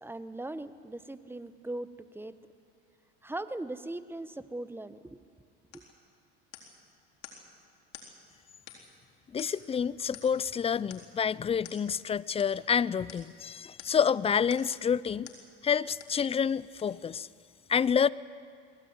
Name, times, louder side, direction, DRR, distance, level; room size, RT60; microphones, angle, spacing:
voice 1, 0.0-2.4 3.2-5.2 5.7-5.8, right 2 dB, 5° right, 13 dB, 1.0 m, -39 dB
sound 1, 5.7-5.9 6.5-6.8 7.2-7.4 7.9-8.1 8.7-9.0 9.4-9.7 10.1-10.4 10.9-11.1 11.6-11.8 12.4-12.6 13.1-13.3 13.8-14.1 14.5-14.8 15.2-15.5 16.0-16.2 16.8-16.9, left 8 dB, 70° left, 4.0 m, -49 dB
voice 2, 9.3-15.3 15.6-17.3 17.7-18.1, left 7 dB, 20° left, 20 dB, 0.5 m, -28 dB
22.0 x 16.0 x 9.5 m, 2.2 s
supercardioid pair, 95°, 32 cm